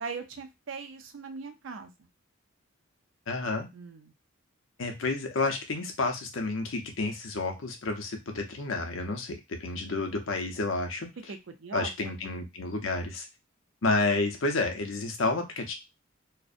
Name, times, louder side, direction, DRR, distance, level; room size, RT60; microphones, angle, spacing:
voice 1, 0.0-2.1 3.7-4.1 11.3-12.1, right 4 dB, 60° right, 6 dB, 0.4 m, -40 dB
voice 2, 3.3-3.7 4.8-11.1 11.7-13.3 13.8-15.7, left 3 dB, 65° left, 4 dB, 0.6 m, -30 dB
2.5 x 2.0 x 2.4 m, 0.22 s
head